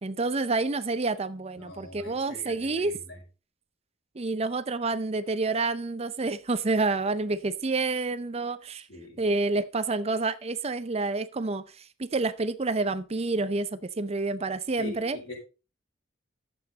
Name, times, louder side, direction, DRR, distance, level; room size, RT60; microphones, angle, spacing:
voice 1, 0.0-2.9 4.2-8.9 9.2-15.2, right 3 dB, 30° right, 0.6 m, -28 dB
voice 2, 1.6-3.2 8.9-9.2 14.8-15.4, left 1 dB, 70° left, 5.7 m, -43 dB
11.5 x 8.0 x 4.0 m
head